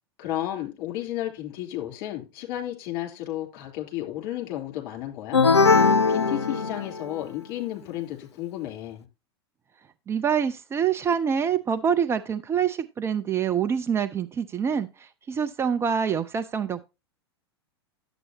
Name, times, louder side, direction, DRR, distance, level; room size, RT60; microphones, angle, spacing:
voice 1, 0.2-5.4 6.1-9.1, left 13 dB, 40° left, 3.2 m, -33 dB
sound 1, 5.3-7.2, left 4 dB, 85° left, 0.5 m, -20 dB
voice 2, 10.1-16.9, right 7 dB, 20° right, 0.4 m, -26 dB
11.0 x 8.0 x 2.8 m
figure-of-eight pair, 90°, 14 cm